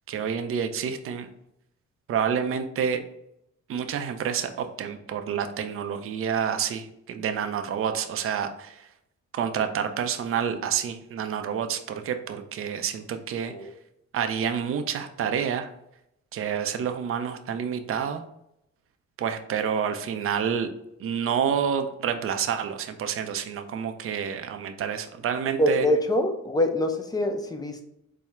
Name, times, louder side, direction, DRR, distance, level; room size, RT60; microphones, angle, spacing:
voice 1, 0.1-1.3 2.1-3.0 3.7-8.9 9.3-13.7 14.1-15.7 16.3-18.2 19.2-20.7 21.0-25.9, right 7 dB, 45° right, 7 dB, 0.5 m, -28 dB
voice 2, 25.6-27.8, left 1 dB, 15° left, 5 dB, 0.5 m, -24 dB
4.3 x 2.1 x 3.5 m, 0.79 s
cardioid pair, 90°, 30 cm